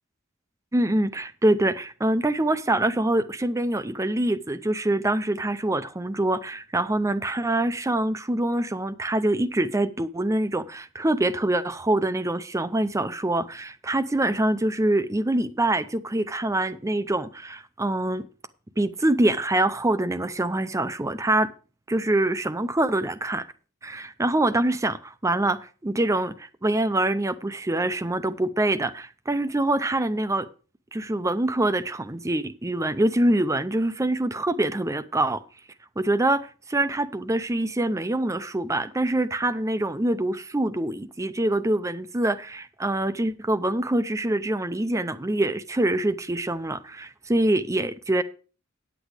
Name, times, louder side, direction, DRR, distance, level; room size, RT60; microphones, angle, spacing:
voice 1, 0.7-18.3 18.8-21.5 21.9-23.5 23.8-30.5 30.9-35.4 36.0-48.2, right 1 dB, 15° right, 0.5 m, -25 dB
9.2 x 8.1 x 4.9 m
head